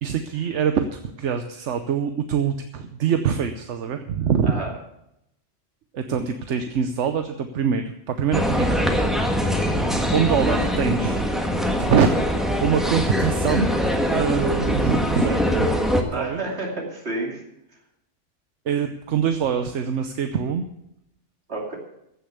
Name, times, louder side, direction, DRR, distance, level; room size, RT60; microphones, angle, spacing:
voice 1, 0.0-4.5 5.9-9.0 10.1-11.3 11.9-13.7 14.1-15.7 16.1-16.4 18.7-20.6, right 7 dB, 80° right, 7 dB, 1.1 m, -24 dB
sound 1, 8.3-16.0, equal, ahead, 1.5 m, -22 dB
voice 2, 16.1-17.4 21.5-21.8, right 2 dB, 60° right, -1 dB, 3.0 m, -30 dB
15.5 x 6.8 x 8.0 m, 0.80 s
omnidirectional pair, 1.2 m